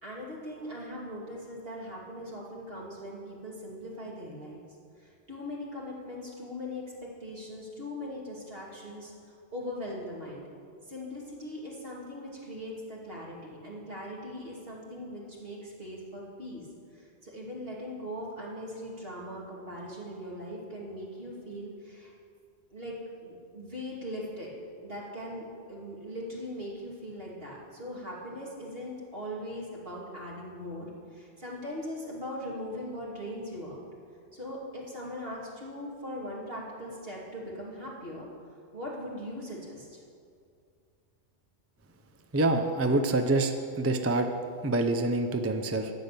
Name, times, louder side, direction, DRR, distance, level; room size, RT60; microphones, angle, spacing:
voice 1, 0.0-4.6 5.3-9.1 9.5-10.4 10.9-16.6 17.2-22.1 22.7-22.9 23.2-24.5 24.8-30.9 31.1-33.8 34.3-38.3 38.7-39.9, equal, 50° right, -4 dB, 2.8 m, -40 dB
voice 2, 42.3-44.3 44.6-45.9, right 2 dB, 20° right, 6 dB, 0.4 m, -26 dB
12.0 x 8.9 x 6.7 m, 2.4 s
omnidirectional pair, 1.2 m